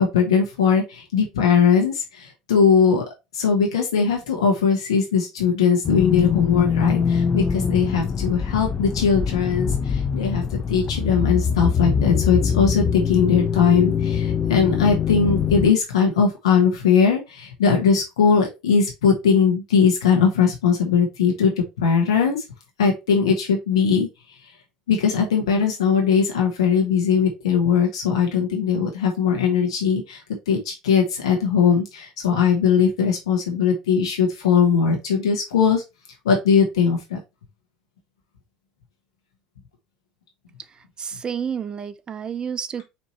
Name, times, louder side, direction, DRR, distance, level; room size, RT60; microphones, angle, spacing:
voice 1, 0.0-3.0 3.3-10.4 10.7-22.4 22.8-24.1 24.9-35.8 36.2-37.2, left 6 dB, 85° left, 1.1 m, -20 dB
sound 1, 5.8-15.7, left 7 dB, 35° left, 0.5 m, -23 dB
voice 2, 41.0-42.8, right 7 dB, 30° right, 0.5 m, -30 dB
4.4 x 2.8 x 4.2 m
hypercardioid pair, 80°, 3 cm